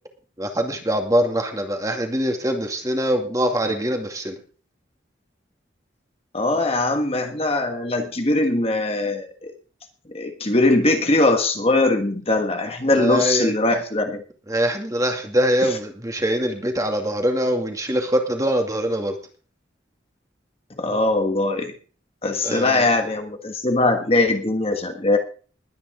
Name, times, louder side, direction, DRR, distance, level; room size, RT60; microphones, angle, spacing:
voice 1, 0.4-4.4 12.9-13.5 14.5-19.2 22.4-22.9, equal, 20° right, 4 dB, 2.3 m, -23 dB
voice 2, 6.3-9.5 10.1-14.2 20.8-21.7 22.2-25.2, left 2 dB, 30° left, 5 dB, 1.5 m, -21 dB
20.5 x 9.5 x 3.8 m, 0.39 s
head